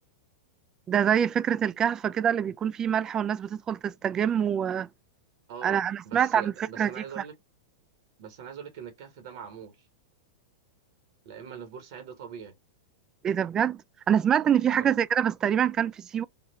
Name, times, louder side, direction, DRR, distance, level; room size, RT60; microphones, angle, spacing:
voice 1, 0.9-4.9 5.6-7.2 13.2-13.8 14.1-16.2, right 9 dB, 25° right, 0.3 m, -25 dB
voice 2, 5.5-7.3 8.2-9.9 11.2-12.6 14.7-15.0, right 7 dB, 60° right, 1.4 m, -42 dB
4.2 x 2.2 x 4.1 m
hypercardioid pair, 105°, 2 cm